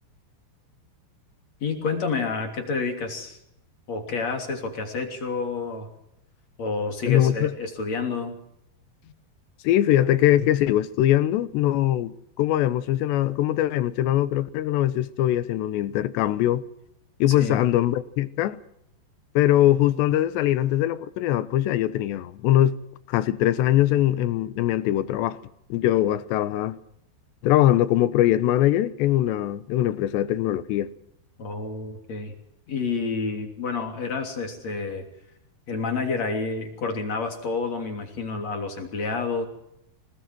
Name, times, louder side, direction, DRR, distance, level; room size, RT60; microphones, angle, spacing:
voice 1, 1.6-3.4 3.9-5.9 6.6-8.4 17.3-17.6 31.4-32.4 32.7-35.1 35.7-39.4, left 4 dB, 40° left, 4.0 m, -29 dB
voice 2, 7.1-7.5 9.6-16.6 17.2-18.6 19.4-22.8 23.1-25.4 25.7-26.8 27.4-30.9, left 13 dB, 85° left, 3.2 m, -22 dB
25.5 x 20.0 x 6.1 m
omnidirectional pair, 4.9 m